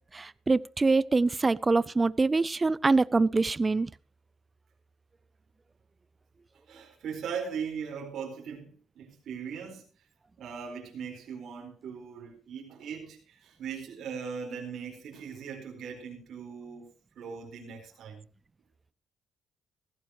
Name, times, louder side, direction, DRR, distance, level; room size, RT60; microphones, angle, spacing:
voice 1, 0.1-3.9, right 3 dB, 25° right, 0.5 m, -24 dB
voice 2, 6.7-10.0 10.4-16.9 17.1-18.3, right 6 dB, 70° right, 4.4 m, -39 dB
16.5 x 15.5 x 3.1 m
cardioid pair, 90°, 0 cm